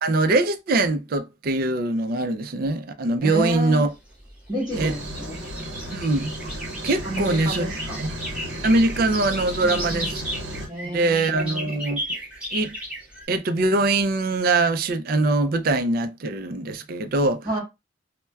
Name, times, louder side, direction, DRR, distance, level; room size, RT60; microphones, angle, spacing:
voice 1, 0.0-3.9 4.8-4.9 5.9-6.3 6.8-8.1 8.6-10.2 10.8-12.0 12.5-12.8 13.3-17.4, right 2 dB, 50° right, 0.4 m, -22 dB
voice 2, 3.2-3.9 4.5-5.4 7.0-8.1 9.6-10.1 10.7-11.7 17.4-17.6, right 1 dB, 25° right, 1.2 m, -30 dB
sound 1, 3.7-13.2, right 1 dB, 5° right, 1.4 m, -35 dB
sound 2, 4.7-10.7, equal, 80° right, 0.8 m, -34 dB
4.3 x 2.1 x 2.2 m
head